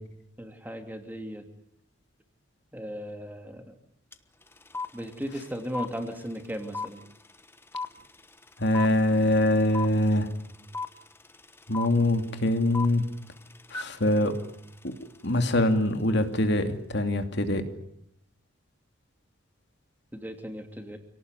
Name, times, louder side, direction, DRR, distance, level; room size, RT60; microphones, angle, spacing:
voice 1, 0.4-1.4 2.7-3.6 4.9-7.0 20.1-21.0, equal, 10° right, 5 dB, 2.8 m, -36 dB
sound 1, 4.1-4.2 4.4-15.6, left 4 dB, 10° left, 1.2 m, -37 dB
voice 2, 8.6-10.3 11.7-13.0 13.7-14.4 14.8-14.9 15.2-17.6, left 1 dB, 55° left, 7 dB, 2.7 m, -24 dB
28.0 x 18.5 x 9.8 m, 0.74 s
head